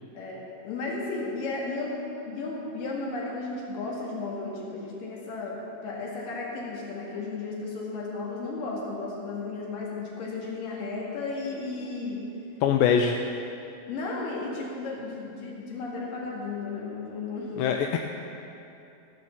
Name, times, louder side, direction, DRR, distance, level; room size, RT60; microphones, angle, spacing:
voice 1, 0.2-12.2 13.9-17.6, left 3 dB, 70° left, -3 dB, 3.6 m, -34 dB
voice 2, 12.6-13.2 17.6-18.0, left 7 dB, 85° left, 4 dB, 2.3 m, -22 dB
14.5 x 6.9 x 7.3 m, 2.8 s
omnidirectional pair, 4.1 m